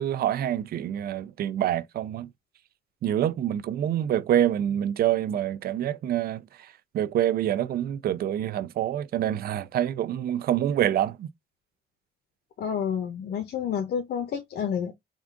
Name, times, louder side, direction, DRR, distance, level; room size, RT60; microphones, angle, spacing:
voice 1, 0.0-2.3 3.0-11.3, right 11 dB, 65° right, 0.4 m, -26 dB
voice 2, 12.6-14.9, left 7 dB, 70° left, 0.8 m, -29 dB
3.6 x 2.4 x 3.6 m
cardioid pair, 115°, 17 cm